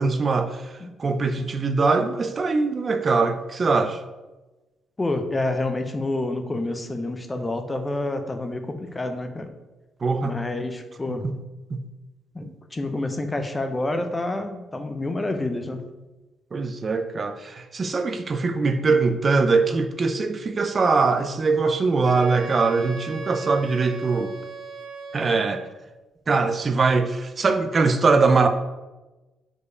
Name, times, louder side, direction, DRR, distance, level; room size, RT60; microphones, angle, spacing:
voice 1, 0.0-4.0 10.0-10.4 11.2-11.3 11.7-11.8 12.4-12.5 16.5-24.3 25.1-25.6 26.3-28.5, right 4 dB, 35° right, 8 dB, 0.5 m, -22 dB
voice 2, 5.0-9.5 10.2-11.3 12.3-15.8, left 2 dB, 20° left, 7 dB, 0.7 m, -28 dB
Wind instrument woodwind instrument, 22.0-25.8, right 4 dB, 85° right, 1.9 m, -38 dB
4.8 x 4.7 x 4.8 m, 1.1 s
cardioid pair, 90°, 0 cm